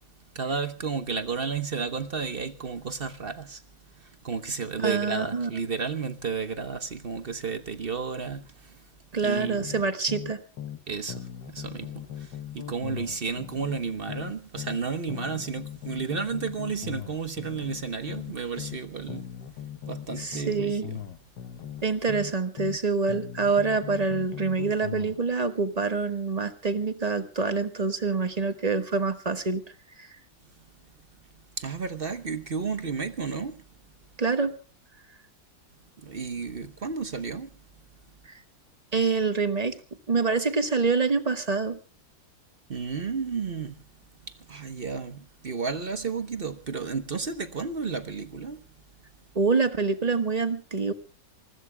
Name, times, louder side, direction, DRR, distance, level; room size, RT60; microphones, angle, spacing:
voice 1, 0.3-3.6 4.0-8.8 9.2-9.7 10.9-19.3 19.8-21.0 31.6-33.6 36.0-37.5 42.7-43.8 44.3-48.6, right 5 dB, 40° right, 1.0 m, -32 dB
voice 2, 4.8-5.5 9.1-10.4 20.2-20.8 21.8-29.6 30.0-30.1 34.2-34.5 38.3-38.4 38.9-39.7 40.1-41.8 49.3-50.9, right 4 dB, 25° right, 1.3 m, -26 dB
sound 1, 9.4-10.8 11.1-14.8 15.1-18.8 19.1-22.8 23.1-25.2, left 9 dB, 75° left, 1.7 m, -39 dB
27.5 x 20.5 x 2.2 m
omnidirectional pair, 1.9 m